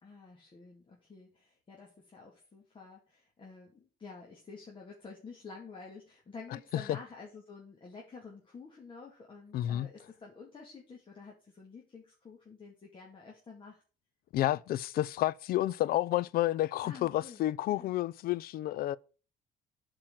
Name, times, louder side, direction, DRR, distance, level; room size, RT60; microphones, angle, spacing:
voice 1, 0.0-13.8 16.8-17.4 17.7-17.9, left 4 dB, 30° left, 2.2 m, -50 dB
voice 2, 9.5-9.9 14.3-19.0, left 14 dB, 60° left, 0.4 m, -30 dB
8.6 x 4.6 x 7.3 m
cardioid pair, 110°, 17 cm